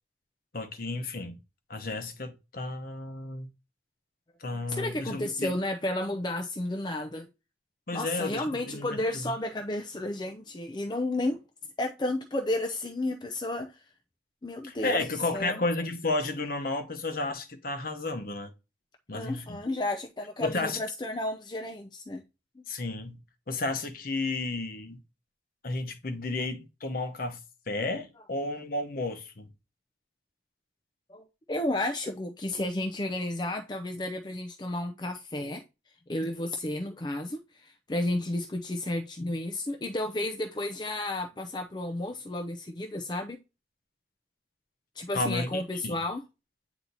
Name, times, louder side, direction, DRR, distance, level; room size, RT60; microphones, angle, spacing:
voice 1, 0.5-1.4 1.7-3.5 4.4-5.6 7.9-9.2 14.6-18.5 19.1-19.6 20.4-20.8 22.7-23.2 23.5-25.0 25.6-27.4 27.7-29.5 45.1-46.0, left 2 dB, 50° left, 0.9 m, -32 dB
voice 2, 4.4-7.3 7.9-11.4 11.8-13.8 14.4-15.0 15.3-15.6 19.1-22.2 22.6-22.7 31.1-35.6 36.1-43.4 45.0-46.2, left 1 dB, 25° left, 0.5 m, -32 dB
8.2 x 2.9 x 4.0 m
head